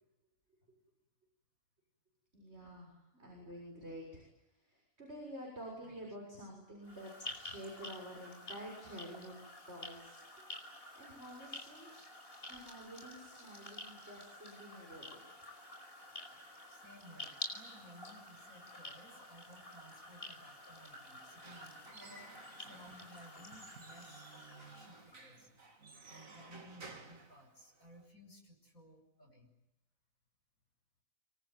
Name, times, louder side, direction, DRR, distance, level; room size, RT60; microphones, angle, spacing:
voice 1, 2.3-4.2 4.6-9.4 9.7-10.2 10.8-11.9 12.5-15.0, equal, 50° right, -2 dB, 7.4 m, -49 dB
sound 1, 6.8-25.3, left 2 dB, 40° left, 5.4 m, -50 dB
voice 2, 16.7-25.5 26.1-29.5, equal, 75° left, 1 dB, 6.3 m, -58 dB
Squeak / Wood, 21.2-28.1, right 3 dB, 70° right, 3.2 m, -55 dB
26.0 x 23.0 x 9.4 m, 0.90 s
omnidirectional pair, 1.5 m